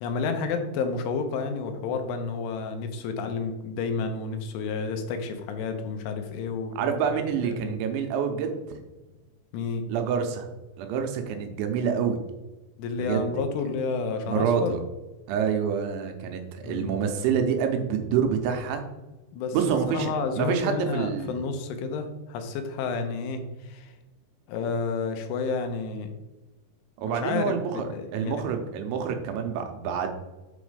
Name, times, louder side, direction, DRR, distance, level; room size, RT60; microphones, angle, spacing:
voice 1, 0.0-6.8 7.4-7.8 9.5-9.8 12.8-14.8 16.6-17.0 19.3-19.6 19.9-23.9 24.5-26.1 27.1-28.5, left 4 dB, 90° left, 6 dB, 3.4 m, -30 dB
voice 2, 6.8-8.8 9.9-10.5 10.8-12.2 12.9-13.3 14.2-14.8 15.3-18.8 19.5-20.1 20.4-21.4 27.0-27.9 28.1-30.1, right 7 dB, 90° right, 5 dB, 3.1 m, -27 dB
8.2 x 4.0 x 4.9 m, 1.1 s
omnidirectional pair, 5.4 m